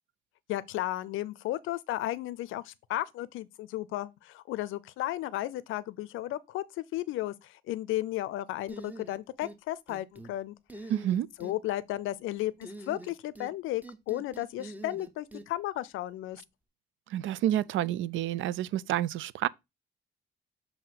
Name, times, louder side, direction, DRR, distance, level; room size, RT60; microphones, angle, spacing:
voice 1, 0.5-10.5 10.8-10.9 11.4-16.4, left 15 dB, 85° left, 0.5 m, -34 dB
sound 1, 8.7-9.6 9.9-10.3 10.7-11.6 12.6-13.5 13.8-15.5, right 2 dB, 10° right, 0.8 m, -45 dB
voice 2, 10.9-11.3 17.1-19.5, right 12 dB, 75° right, 0.4 m, -29 dB
7.4 x 2.7 x 5.8 m
cardioid pair, 90°, 20 cm